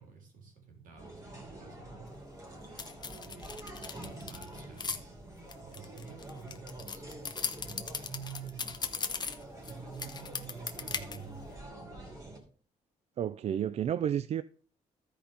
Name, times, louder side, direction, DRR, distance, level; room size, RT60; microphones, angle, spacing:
voice 1, 0.0-2.1 3.2-5.1 5.6-7.1 7.6-8.7 9.7-12.3, right 6 dB, 70° right, 3.5 m, -49 dB
sound 1, 1.0-12.4, right 1 dB, 20° right, 2.9 m, -47 dB
sound 2, 2.8-5.0 5.5-9.7 10.0-11.2, left 5 dB, 30° left, 1.0 m, -37 dB
voice 2, 13.2-14.4, right 9 dB, 50° right, 0.4 m, -31 dB
13.0 x 5.0 x 5.1 m
cardioid pair, 100°, 14 cm